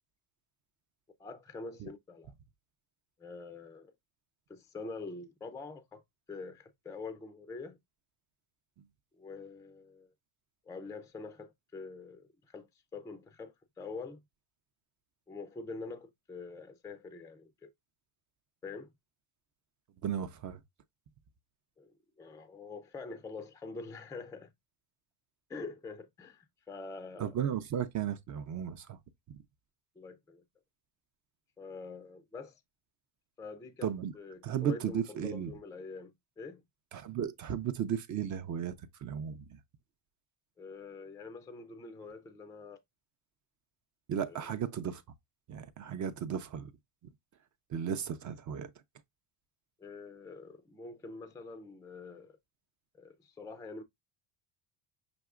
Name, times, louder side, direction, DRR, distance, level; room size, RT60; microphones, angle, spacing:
voice 1, 1.2-2.3 3.2-3.9 4.5-6.0 6.3-7.8 9.2-10.1 10.7-14.2 15.3-17.7 18.6-18.9 21.8-24.5 25.5-27.3 30.0-30.4 31.6-32.6 33.4-33.9 34.1-36.6 40.6-42.8 44.3-44.5 49.8-52.4 53.0-53.8, left 4 dB, 10° left, 0.4 m, -45 dB
voice 2, 20.0-20.6 27.2-29.0 29.3-29.4 33.8-34.1 34.4-35.5 36.9-38.7 39.0-39.6 44.1-45.0 45.5-46.7 47.7-48.7, right 8 dB, 40° right, 0.5 m, -35 dB
6.1 x 2.9 x 2.4 m
cardioid pair, 125°, 48 cm